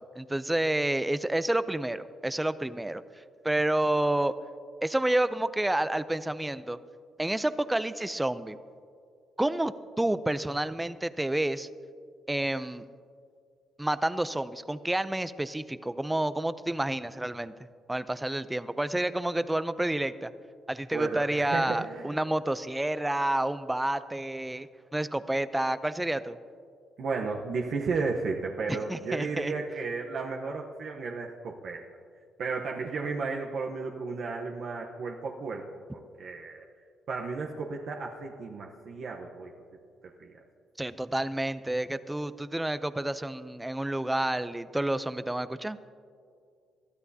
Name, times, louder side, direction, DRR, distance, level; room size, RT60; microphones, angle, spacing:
voice 1, 0.0-3.0 3.4-4.3 4.8-6.8 7.2-8.6 9.4-11.7 12.3-12.8 13.8-17.5 17.9-20.3 20.7-26.4 28.9-29.5 40.8-45.9, right 1 dB, 10° right, 14 dB, 0.5 m, -29 dB
voice 2, 20.9-22.2 27.0-31.8 32.4-35.7 35.9-36.7 37.1-39.5 40.2-40.3, right 4 dB, 65° right, 0 dB, 0.9 m, -33 dB
21.5 x 13.0 x 2.8 m, 2.3 s
cardioid pair, 90°, 0 cm